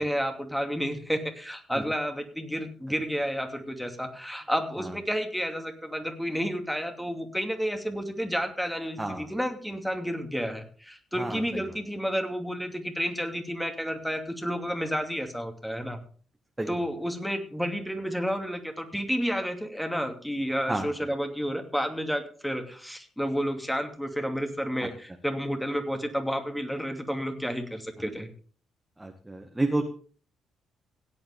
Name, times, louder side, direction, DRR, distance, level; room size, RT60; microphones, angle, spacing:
voice 1, 0.0-16.0 16.7-28.3, equal, 5° left, 5 dB, 2.7 m, -31 dB
voice 2, 9.0-9.3 11.2-11.6 16.6-16.8 20.7-20.9 29.0-29.8, right 2 dB, 15° right, 3 dB, 1.9 m, -30 dB
17.5 x 10.5 x 3.6 m, 0.42 s
figure-of-eight pair, 45°, 0 cm